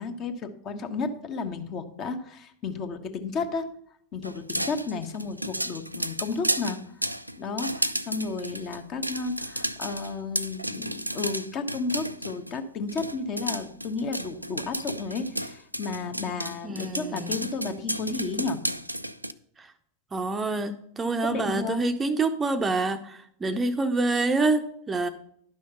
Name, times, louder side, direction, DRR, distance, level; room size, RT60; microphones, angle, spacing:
voice 1, 0.0-3.7 4.1-6.8 7.4-18.6 21.2-21.8, left 4 dB, 35° left, 8 dB, 1.1 m, -32 dB
sound 1, 4.2-12.6 12.9-19.3, right 1 dB, 90° right, 0.4 m, -32 dB
voice 2, 16.6-17.5 19.6-19.7 20.1-25.1, right 3 dB, 15° right, 9 dB, 0.7 m, -27 dB
11.0 x 6.3 x 5.6 m, 0.67 s
figure-of-eight pair, 90°, 0 cm